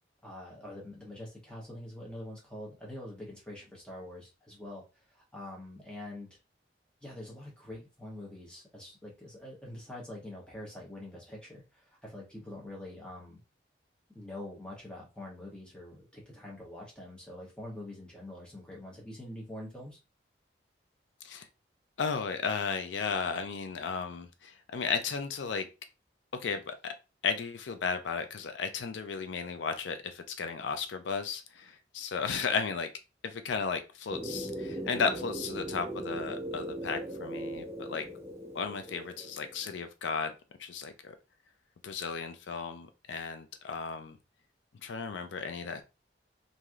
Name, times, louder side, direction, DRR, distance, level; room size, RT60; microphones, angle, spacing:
voice 1, 0.2-4.8 5.1-6.4 7.0-13.4 14.1-20.0, left 1 dB, 5° left, -3 dB, 1.0 m, -45 dB
voice 2, 22.0-25.7 26.4-26.9 27.2-32.9 33.2-38.0 38.5-40.3 40.6-41.2 41.8-44.2 44.8-45.8, left 5 dB, 80° left, 8 dB, 0.4 m, -34 dB
sound 1, 34.1-39.8, right 1 dB, 15° right, 0.4 m, -39 dB
3.0 x 2.7 x 2.4 m, 0.28 s
head